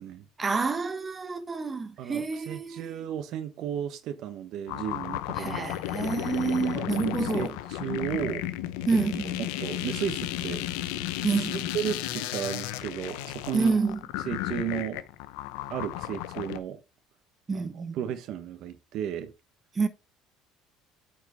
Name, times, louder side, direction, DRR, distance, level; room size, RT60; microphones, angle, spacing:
voice 1, 0.4-3.0 5.4-7.5 8.9-9.3 11.2-11.7 13.5-14.0 17.5-18.0 19.7-19.9, right 4 dB, 25° right, 1.2 m, -28 dB
voice 2, 2.0-5.6 6.7-8.4 8.9-9.0 9.4-10.6 11.3-11.4 11.7-13.7 14.3-15.0 15.7-16.8 17.5-17.7 17.9-19.3, right 10 dB, 65° right, 1.1 m, -34 dB
sound 1, 4.7-16.6, left 14 dB, 85° left, 0.7 m, -33 dB
8.5 x 4.6 x 4.4 m
supercardioid pair, 90°, 0 cm